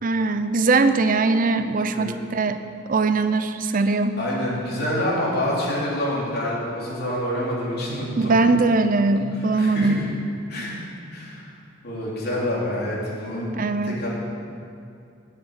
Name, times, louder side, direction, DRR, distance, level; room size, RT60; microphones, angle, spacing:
voice 1, 0.0-2.6 2.9-4.2 8.2-10.0 13.5-14.0, right 3 dB, 45° right, 10 dB, 0.6 m, -21 dB
voice 2, 4.2-8.3 9.1-10.0 10.5-10.8 11.1-11.5 11.8-13.5 13.8-14.1, left 1 dB, 55° left, -6 dB, 3.2 m, -27 dB
9.0 x 8.0 x 8.7 m, 2.5 s
head